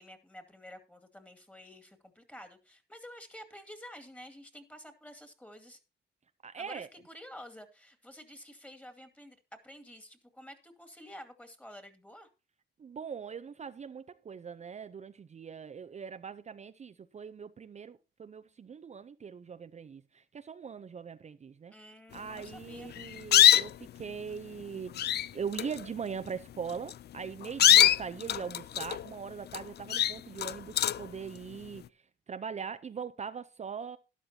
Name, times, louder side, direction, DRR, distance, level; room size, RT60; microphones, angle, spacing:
voice 1, 0.0-5.8 6.6-9.4 9.6-12.3 21.7-22.9, equal, 5° left, 2.3 m, -50 dB
voice 2, 6.4-6.9 12.8-21.7 22.1-31.8 32.3-34.0, right 6 dB, 35° right, 0.6 m, -41 dB
sound 1, 22.9-23.9 24.6-24.7 24.9-25.3 25.5-25.8 26.7-26.9 27.4-29.1 29.5-29.6 29.9-31.1, left 11 dB, 55° left, 0.5 m, -23 dB
12.5 x 11.5 x 2.8 m
cardioid pair, 95°, 20 cm